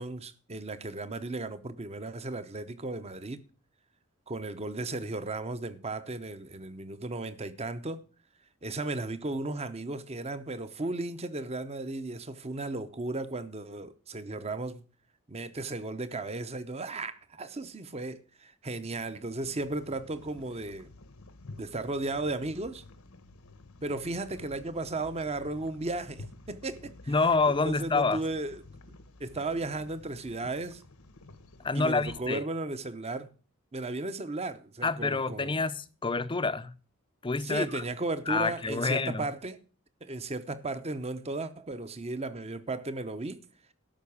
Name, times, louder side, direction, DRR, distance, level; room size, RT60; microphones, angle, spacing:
voice 1, 0.0-3.4 4.3-8.0 8.6-14.8 15.3-20.9 21.6-22.8 23.8-27.1 27.6-28.6 29.2-30.8 31.7-33.3 33.7-35.6 37.4-39.6 40.0-43.4, right 2 dB, 30° right, 0.9 m, -35 dB
sound 1, 19.4-32.2, left 2 dB, 80° left, 1.1 m, -51 dB
voice 2, 27.1-28.2 31.6-32.4 34.8-36.7 37.2-37.8 38.3-39.3, left 4 dB, 25° left, 0.6 m, -28 dB
12.5 x 5.9 x 7.1 m
head